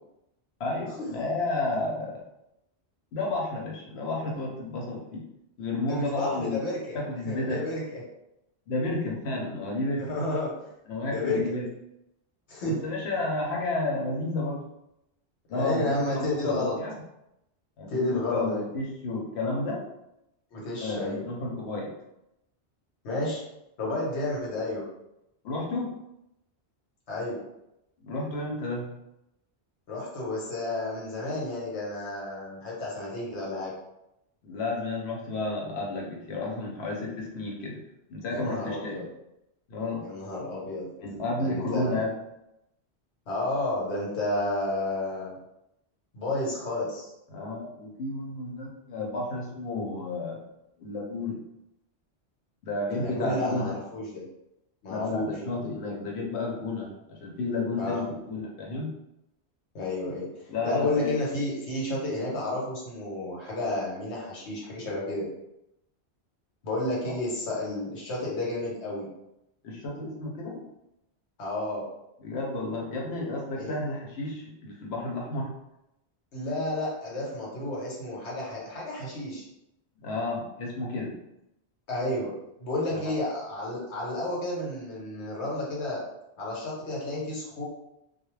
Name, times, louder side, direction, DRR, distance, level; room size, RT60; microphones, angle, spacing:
voice 1, 0.6-2.2 3.1-5.2 5.6-6.6 6.9-7.7 8.7-10.1 10.9-11.6 12.7-14.7 15.5-17.0 17.8-19.8 20.8-21.9 25.4-26.0 28.0-28.9 34.4-37.8 38.1-39.0 39.7-40.1 41.0-42.2 47.3-50.4 50.8-51.4 52.6-53.7 54.9-58.9 60.5-61.1 67.1-67.2 69.6-70.6 72.2-75.5 80.0-81.2 82.9-83.1, left 2 dB, 70° left, -2 dB, 0.9 m, -31 dB
voice 2, 5.9-8.0 10.0-10.5 11.1-11.4 12.5-12.8 15.5-16.8 17.9-18.6 20.5-21.2 23.0-23.4 23.8-24.8 27.1-27.4 29.9-33.7 38.3-39.0 40.0-40.9 41.4-42.0 43.3-45.4 46.1-47.1 52.9-54.2 54.8-55.3 57.8-58.0 59.7-65.3 66.6-69.1 71.4-71.9 73.6-73.7 76.3-79.5 81.9-82.3 82.6-86.0 86.4-87.6, left 2 dB, 90° left, -4 dB, 1.2 m, -31 dB
2.4 x 2.0 x 3.1 m, 0.85 s
omnidirectional pair, 1.1 m